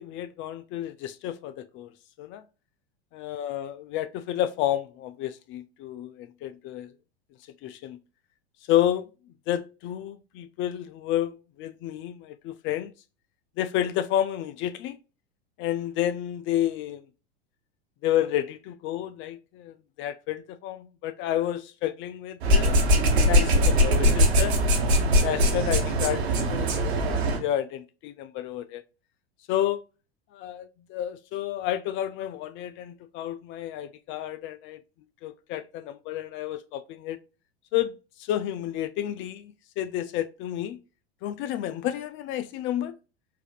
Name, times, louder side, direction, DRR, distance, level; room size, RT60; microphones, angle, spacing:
voice 1, 0.0-1.9 2.2-2.4 3.1-6.9 7.6-8.0 8.7-9.1 9.5-12.9 13.6-15.0 15.6-17.0 18.0-22.8 23.1-24.5 25.2-26.7 27.1-28.8 29.5-29.8 30.3-34.8 35.2-37.2 37.7-37.9 38.2-40.8 41.2-42.9, left 12 dB, 40° left, 0.4 m, -30 dB
sound 1, 22.4-27.4, equal, 80° right, 1.4 m, -21 dB
4.6 x 2.5 x 2.3 m
hypercardioid pair, 95°, 31 cm